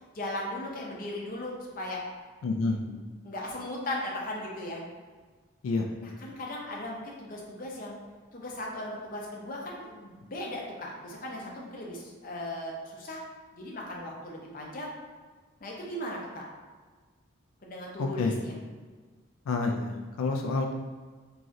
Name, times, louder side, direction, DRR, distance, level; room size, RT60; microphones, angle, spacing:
voice 1, 0.1-2.0 2.9-4.8 6.0-8.0 8.3-13.2 13.5-14.9 15.6-16.5 17.6-18.5, left 1 dB, 40° left, -3 dB, 0.6 m, -37 dB
voice 2, 2.4-2.8 5.6-5.9 18.0-18.4 19.5-20.7, left 3 dB, 90° left, 2 dB, 0.3 m, -28 dB
3.7 x 3.0 x 2.6 m, 1.4 s
head